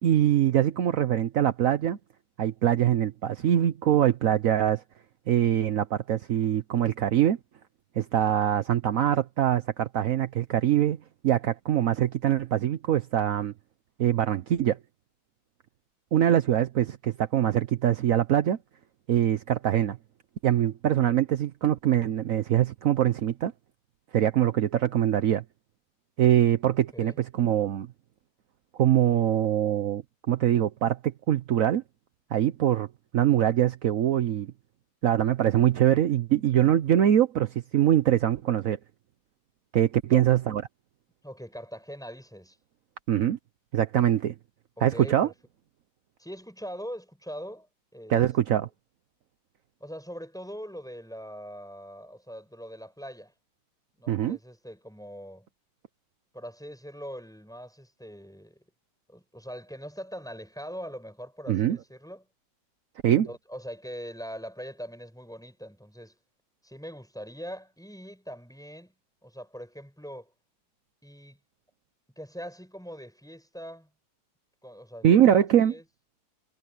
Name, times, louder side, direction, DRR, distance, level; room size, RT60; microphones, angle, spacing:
voice 1, 0.0-2.0 2.4-4.8 5.3-7.4 8.0-11.0 11.2-13.5 14.0-14.8 16.1-18.6 19.1-20.0 20.4-23.5 24.1-25.4 26.2-27.9 28.8-31.8 32.3-32.9 33.1-34.5 35.0-38.8 39.7-40.6 43.1-43.4 43.7-44.3 44.8-45.3 48.1-48.7 54.1-54.4 61.5-61.8 63.0-63.3 75.0-75.7, right 11 dB, 65° right, 0.8 m, -23 dB
voice 2, 41.2-42.6 44.8-45.3 46.2-48.2 49.8-53.3 54.0-55.5 56.3-58.6 59.1-62.2 63.0-66.1 66.6-68.9 69.2-70.3 71.0-71.4 72.2-73.9 74.6-75.8, equal, ahead, 7.6 m, -42 dB
omnidirectional pair, 2.3 m